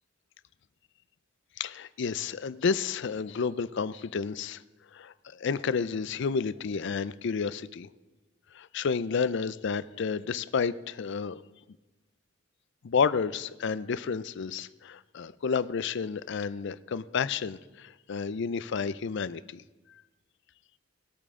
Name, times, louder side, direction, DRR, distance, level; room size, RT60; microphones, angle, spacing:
voice 1, 1.6-4.6 4.9-7.9 8.5-11.4 12.8-19.6, left 5 dB, 60° left, 16 dB, 0.4 m, -31 dB
20.0 x 8.5 x 3.7 m, 1.1 s
head